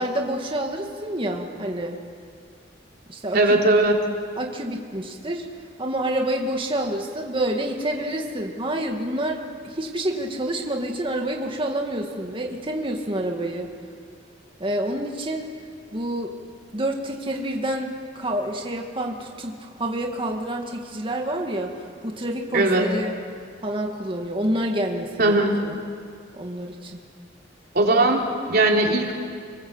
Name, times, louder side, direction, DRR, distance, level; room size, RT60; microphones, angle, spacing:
voice 1, 0.0-2.0 3.1-3.5 4.4-5.4 5.8-13.7 14.6-15.5 15.9-16.3 16.7-21.7 22.0-23.2 23.6-25.8 26.3-27.0, right 1 dB, 30° right, 1 dB, 2.2 m, -28 dB
voice 2, 3.3-4.0 22.5-22.9 25.2-25.6 27.7-29.1, right 2 dB, 55° right, 1 dB, 3.6 m, -19 dB
29.5 x 21.0 x 8.1 m, 2.2 s
head